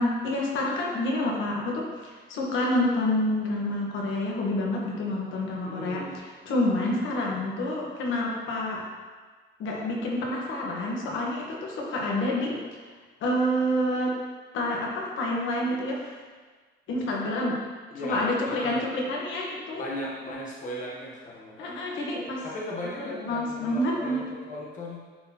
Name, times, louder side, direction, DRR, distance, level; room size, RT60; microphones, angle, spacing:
voice 1, 0.0-6.0 6.4-8.8 9.6-12.6 13.2-14.1 14.5-16.1 16.9-17.5 18.0-19.9 21.6-22.4 23.0-24.2, left 1 dB, 80° left, -2 dB, 1.3 m, -28 dB
voice 2, 5.6-6.2 17.9-18.8 19.8-21.8 22.4-25.0, left 1 dB, 40° left, -4 dB, 1.1 m, -37 dB
10.0 x 4.0 x 2.9 m, 1.4 s
cardioid pair, 155°, 19 cm